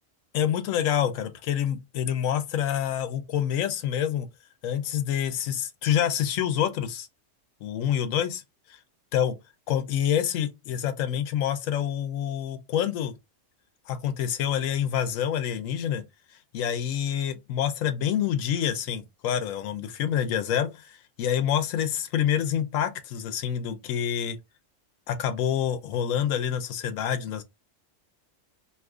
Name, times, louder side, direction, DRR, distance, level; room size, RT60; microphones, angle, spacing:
voice 1, 0.3-4.3 4.6-7.1 7.6-8.4 8.7-8.8 9.1-9.4 9.7-13.1 13.9-16.0 16.5-24.4 25.1-27.4, left 9 dB, 90° left, 1.0 m, -27 dB
2.6 x 2.4 x 3.5 m
omnidirectional pair, 1.3 m